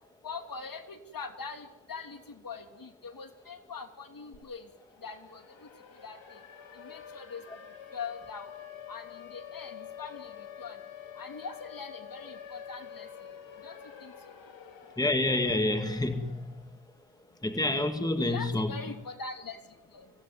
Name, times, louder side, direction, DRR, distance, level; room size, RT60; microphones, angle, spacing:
voice 1, 0.2-4.7 5.0-5.7 6.0-6.4 6.7-7.4 7.9-8.5 8.9-10.8 11.1-13.1 13.6-14.1 18.2-20.1, left 5 dB, 45° left, 6 dB, 3.0 m, -42 dB
Siren, 4.3-4.4 4.7-16.8, left 9 dB, 75° left, 4.4 m, -48 dB
voice 2, 15.0-16.5 17.4-18.8, left 2 dB, 10° left, 7 dB, 2.0 m, -28 dB
25.5 x 17.0 x 9.4 m, 0.94 s
cardioid pair, 95°, 45 cm